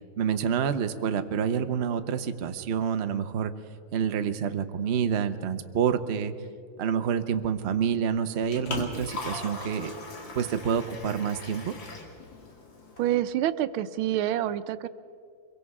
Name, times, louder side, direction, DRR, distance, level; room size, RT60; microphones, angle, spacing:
voice 1, 0.2-3.5 3.9-6.3 6.8-9.9 10.3-11.7, right 7 dB, 55° right, 9 dB, 0.7 m, -28 dB
Liquid, 8.1-13.2, left 3 dB, 65° left, 3.0 m, -39 dB
voice 2, 13.0-14.9, right 12 dB, 85° right, 13 dB, 1.5 m, -27 dB
24.0 x 22.5 x 4.8 m, 2.2 s
omnidirectional pair, 2.2 m